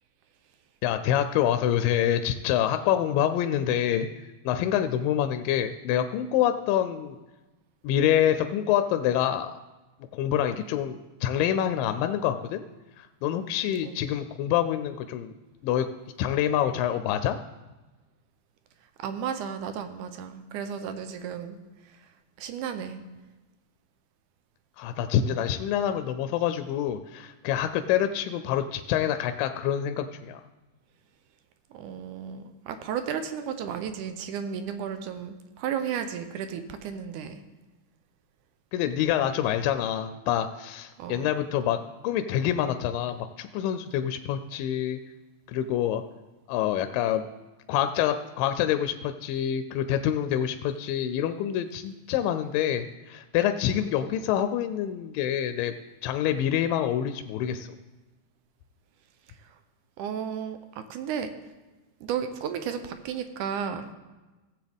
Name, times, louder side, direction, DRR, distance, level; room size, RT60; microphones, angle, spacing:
voice 1, 0.8-4.1 4.5-7.2 7.8-9.5 10.1-12.6 13.0-15.3 15.6-15.9 16.2-17.4 24.8-30.4 38.7-45.0 45.5-46.0 46.5-47.3 47.7-55.7 56.0-57.8, left 10 dB, 85° left, 9 dB, 2.2 m, -26 dB
voice 2, 19.0-21.6 21.8-22.1 22.4-23.0 31.7-37.4 41.0-41.3 59.4-59.6 60.0-61.3 62.0-63.9, right 8 dB, 75° right, 9 dB, 2.0 m, -34 dB
16.5 x 7.9 x 3.5 m, 1.1 s
omnidirectional pair, 4.0 m